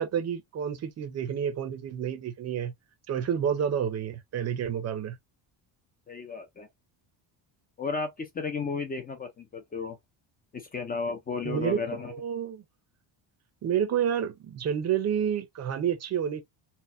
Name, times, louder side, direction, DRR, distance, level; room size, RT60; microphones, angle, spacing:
voice 1, 0.0-2.7 3.1-5.2 11.4-12.6 13.6-16.4, right 8 dB, 35° right, 0.5 m, -29 dB
voice 2, 6.1-6.7 7.8-10.0 10.5-12.1, left 5 dB, 20° left, 0.3 m, -33 dB
4.2 x 2.1 x 2.4 m
cardioid pair, 175°, 47 cm